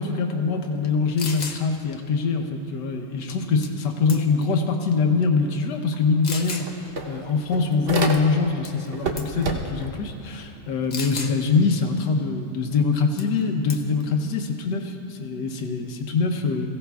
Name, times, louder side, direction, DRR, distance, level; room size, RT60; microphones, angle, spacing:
voice 1, 0.0-16.7, left 4 dB, 85° left, 3 dB, 1.5 m, -24 dB
sound 1, 0.8-0.9 1.2-1.6 3.6-3.8 4.1-4.5 5.2-5.3 6.2-6.7 8.6-8.9 9.2-9.4 10.9-11.4 13.2-13.4 13.7-14.0, left 4 dB, 45° left, 0.6 m, -33 dB
sound 2, 5.9-6.0 6.3-8.6 8.9-10.0, right 3 dB, 45° right, 0.8 m, -29 dB
22.0 x 16.0 x 2.3 m, 2.9 s
omnidirectional pair, 1.8 m